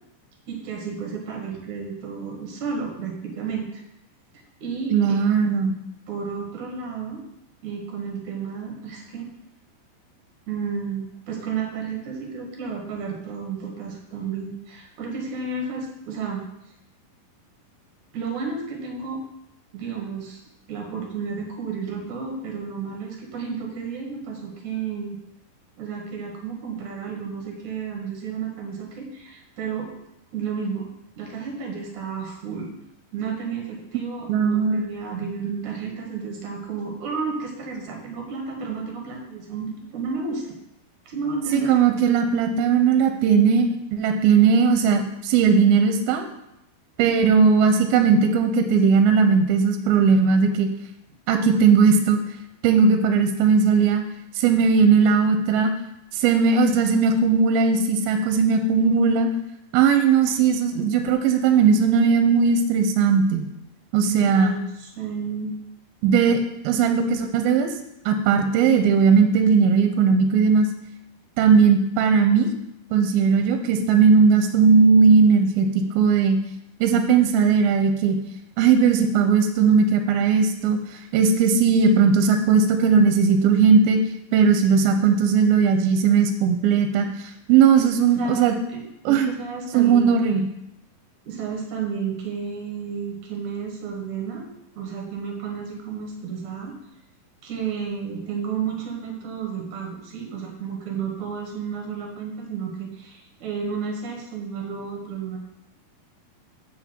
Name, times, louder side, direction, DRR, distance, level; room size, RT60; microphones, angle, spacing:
voice 1, 0.5-3.8 4.6-5.3 6.1-7.2 7.6-9.3 10.5-16.4 18.1-19.2 19.7-20.4 20.7-25.2 25.8-29.9 30.3-30.9 31.2-32.7 33.1-40.4 41.1-41.8 64.1-65.5 87.7-90.4 91.3-94.5 94.7-96.8 97.4-105.4, right 5 dB, 60° right, 1 dB, 2.6 m, -32 dB
voice 2, 4.9-5.7 33.9-34.0 34.3-34.9 35.1-35.3 41.5-46.3 47.0-50.7 51.3-52.2 52.6-54.0 54.4-55.7 56.1-59.3 59.7-63.4 63.9-64.5 66.0-66.4 66.6-67.7 68.1-70.7 71.4-72.5 72.9-75.7 76.0-76.4 76.8-78.2 78.6-80.8 81.1-84.0 84.3-87.1 87.5-88.6 89.1-89.3 89.7-90.5, right 5 dB, 85° right, 6 dB, 2.5 m, -18 dB
8.3 x 5.4 x 4.4 m, 0.84 s
omnidirectional pair, 4.4 m